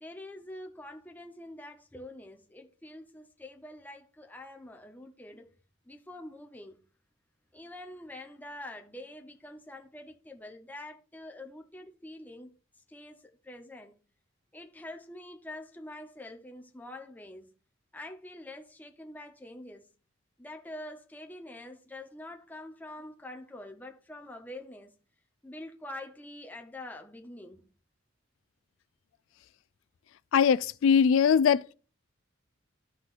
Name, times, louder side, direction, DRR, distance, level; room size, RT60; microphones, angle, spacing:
voice 1, 0.0-5.5 5.9-6.8 7.5-12.5 12.9-14.0 14.5-17.5 17.9-19.9 20.4-24.9 25.4-27.6, left 1 dB, 10° left, 0.8 m, -45 dB
voice 2, 30.3-31.7, left 7 dB, 70° left, 0.3 m, -22 dB
13.5 x 5.9 x 2.5 m
head